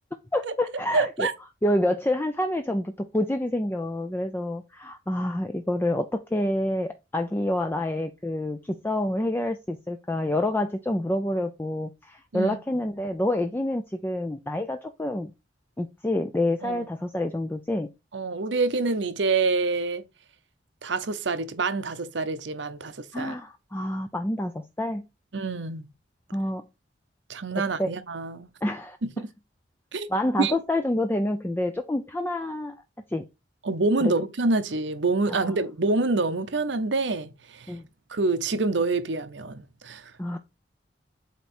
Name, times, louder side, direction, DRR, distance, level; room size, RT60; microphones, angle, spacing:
voice 1, 0.3-1.3 1.6-15.3 15.8-17.9 23.1-25.1 26.3-26.7 27.6-27.9 28.6-29.0 30.1-32.7 33.1-33.2 34.0-34.1 35.3-35.6 37.7-37.9 40.2-40.4, left 1 dB, 10° left, 0.4 m, -28 dB
voice 2, 0.9-1.3 12.3-12.6 16.6-16.8 18.1-20.0 20.8-23.3 25.3-25.8 27.3-28.5 29.0-29.1 29.9-30.1 30.4-30.6 33.6-37.8 38.1-40.1, right 3 dB, 75° right, 0.8 m, -26 dB
8.2 x 3.1 x 4.3 m
head